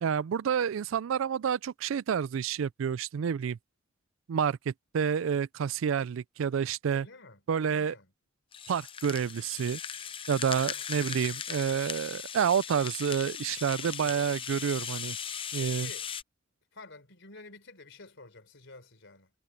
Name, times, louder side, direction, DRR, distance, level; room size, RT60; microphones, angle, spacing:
voice 1, 0.0-3.6 4.3-7.1 7.5-7.9 8.7-9.8 10.3-15.2 15.5-15.9, right 7 dB, 70° right, 0.4 m, -29 dB
voice 2, 6.9-8.1 10.7-11.2 13.8-14.2 15.6-16.1 16.7-19.3, left 3 dB, 65° left, 4.4 m, -51 dB
Rattle (instrument), 8.5-16.2, left 8 dB, 25° left, 0.6 m, -38 dB
head